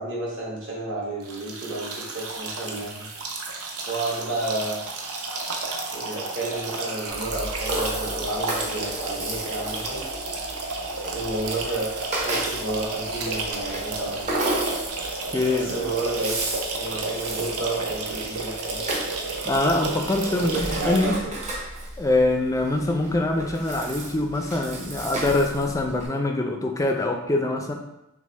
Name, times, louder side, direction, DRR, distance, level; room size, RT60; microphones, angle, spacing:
voice 1, 0.0-3.1 3.9-4.8 5.9-10.0 11.0-14.3 15.4-16.4 16.7-18.8 20.3-21.3, right 2 dB, 55° right, -5 dB, 1.2 m, -31 dB
sound 1, 1.2-21.0, right 3 dB, 75° right, 0.6 m, -32 dB
Rattle (instrument), 7.1-26.1, right 1 dB, 30° right, 0.7 m, -34 dB
voice 2, 15.3-15.7 19.5-21.2 22.0-27.7, left 2 dB, 15° left, 3 dB, 0.3 m, -24 dB
6.0 x 2.1 x 3.1 m, 0.90 s
head